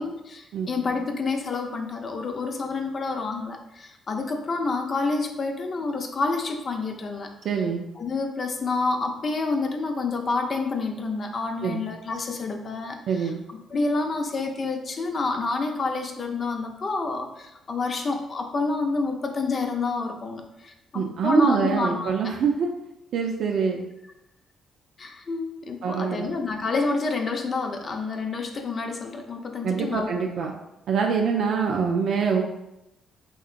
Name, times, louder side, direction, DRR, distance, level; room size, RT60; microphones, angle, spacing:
voice 1, 0.0-7.3 8.0-13.3 13.7-22.3 25.0-30.1, left 3 dB, 45° left, 4 dB, 0.5 m, -28 dB
voice 2, 7.4-7.8 11.6-11.8 13.1-13.4 20.9-22.7 23.1-23.9 25.8-26.3 29.6-30.5 30.9-32.4, right 6 dB, 70° right, 1 dB, 0.4 m, -24 dB
4.4 x 2.8 x 2.4 m, 0.89 s
cardioid pair, 90°, 0 cm